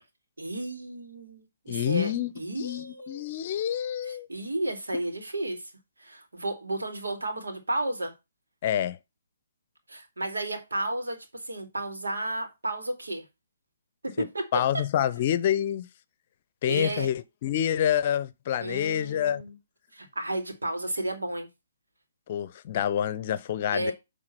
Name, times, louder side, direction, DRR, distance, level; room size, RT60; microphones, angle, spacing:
voice 1, 0.4-3.3 4.0-5.7 6.0-8.1 9.9-11.2 11.4-13.2 14.2-14.4 16.7-17.1 18.6-19.6 19.9-21.5 23.7-23.9, right 1 dB, 85° right, 2.5 m, -32 dB
voice 2, 1.7-4.3 8.6-9.0 14.2-14.3 14.5-15.9 16.6-19.4 22.3-23.9, left 10 dB, 40° left, 0.7 m, -27 dB
8.9 x 3.8 x 5.8 m
hypercardioid pair, 140°, 0 cm